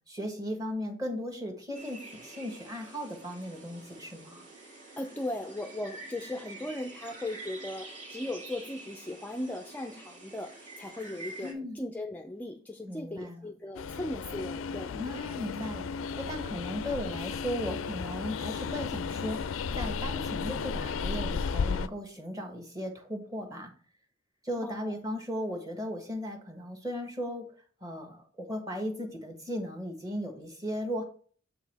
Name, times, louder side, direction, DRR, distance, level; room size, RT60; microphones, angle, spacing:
voice 1, 0.1-4.4 11.4-11.8 12.8-13.5 14.9-15.9 16.2-19.4 19.8-23.7 24.4-27.5 27.8-31.0, equal, 20° right, 1.4 m, -36 dB
sound 1, 1.7-11.5, right 2 dB, 40° right, 1.7 m, -47 dB
voice 2, 5.0-15.0 24.6-24.9, left 1 dB, 10° left, 0.4 m, -38 dB
Train, 13.7-21.9, left 5 dB, 75° left, 0.4 m, -34 dB
7.2 x 4.6 x 3.4 m
head